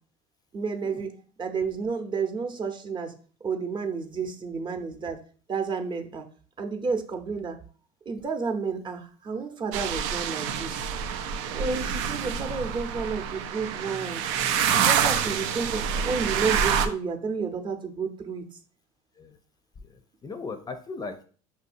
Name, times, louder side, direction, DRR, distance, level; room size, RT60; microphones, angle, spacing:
voice 1, 0.5-1.1 1.4-3.1 3.4-5.2 5.5-6.2 6.6-7.6 8.1-10.9 11.5-14.2 14.7-18.4, right 5 dB, 30° right, 4 dB, 0.8 m, -31 dB
sound 1, 9.7-16.9, right 8 dB, 85° right, 0.5 m, -27 dB
voice 2, 19.8-21.2, left 4 dB, 25° left, 8 dB, 0.5 m, -38 dB
5.6 x 2.7 x 2.6 m, 0.42 s
supercardioid pair, 105°, 15 cm